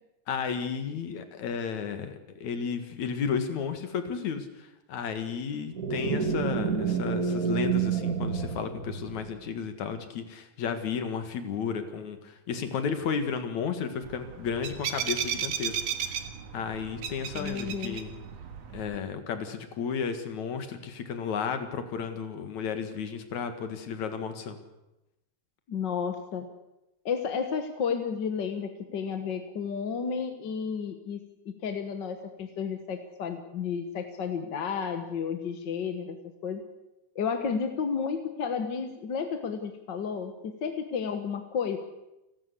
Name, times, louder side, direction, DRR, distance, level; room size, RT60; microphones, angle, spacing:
voice 1, 0.3-16.2 16.5-18.1 18.7-24.6, left 6 dB, 75° left, 8 dB, 3.1 m, -33 dB
sound 1, 5.7-9.4, right 6 dB, 40° right, 1.4 m, -29 dB
sound 2, 14.0-19.0, right 8 dB, 65° right, 2.6 m, -35 dB
voice 2, 17.4-18.0 25.7-26.5 27.0-31.2 31.4-36.2 36.4-36.6 37.1-41.8, left 6 dB, 50° left, 7 dB, 1.6 m, -32 dB
30.0 x 12.5 x 8.3 m, 0.95 s
omnidirectional pair, 3.3 m